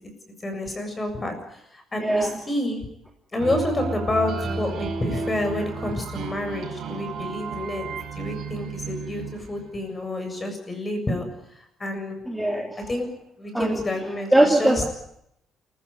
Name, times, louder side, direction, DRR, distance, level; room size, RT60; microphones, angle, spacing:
voice 1, 0.4-2.8 3.3-7.8 8.1-11.3 11.8-12.2 12.9-13.1 13.4-14.8, left 1 dB, 20° left, 6 dB, 7.4 m, -29 dB
voice 2, 2.0-2.4 12.3-12.9 13.5-13.8 14.3-14.8, right 1 dB, 5° right, 1 dB, 3.0 m, -21 dB
sound 1, 3.4-10.0, right 4 dB, 55° right, 5.5 m, -32 dB
28.0 x 16.0 x 9.7 m, 0.75 s
cardioid pair, 140°, 0 cm